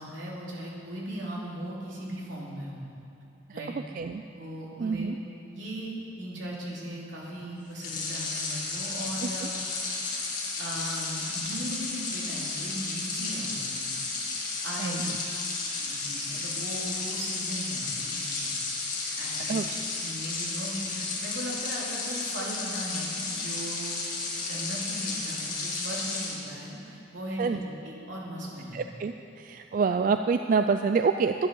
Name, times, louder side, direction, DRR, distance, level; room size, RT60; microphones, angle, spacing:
voice 1, 0.0-2.8 3.5-3.8 4.3-5.1 5.4-9.5 9.9-10.2 10.6-13.9 14.6-15.5 15.8-18.6 19.2-19.6 20.0-24.0 24.4-28.8, right 1 dB, 80° right, -4 dB, 2.8 m, -38 dB
voice 2, 4.8-5.2 9.2-9.3 14.8-15.0 19.5-19.7 27.4-27.6 28.7-31.3, right 5 dB, 45° right, 7 dB, 0.3 m, -26 dB
sound 1, 7.8-26.4, left 3 dB, 45° left, 2.1 m, -33 dB
11.0 x 10.5 x 6.3 m, 2.7 s
head